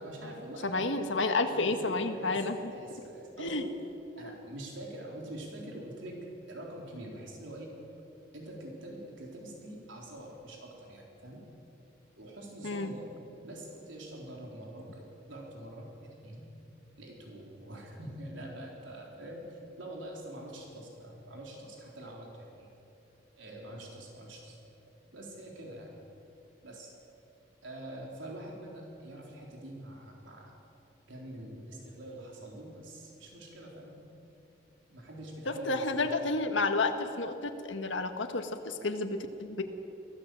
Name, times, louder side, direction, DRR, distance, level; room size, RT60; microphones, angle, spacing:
voice 1, 0.0-0.9 1.5-1.7 2.0-3.7 4.2-6.2 6.5-7.8 8.3-11.4 12.2-13.1 13.4-16.4 17.0-22.7 23.4-24.6 25.1-26.0 26.6-26.9 27.6-30.6 31.1-34.0 34.9-36.2, right 1 dB, 80° right, -1 dB, 3.8 m, -45 dB
voice 2, 0.6-2.6 3.4-3.6 4.2-4.4 12.6-12.9 35.5-39.6, left 3 dB, 80° left, 6 dB, 1.7 m, -31 dB
23.5 x 16.5 x 7.7 m, 2.9 s
head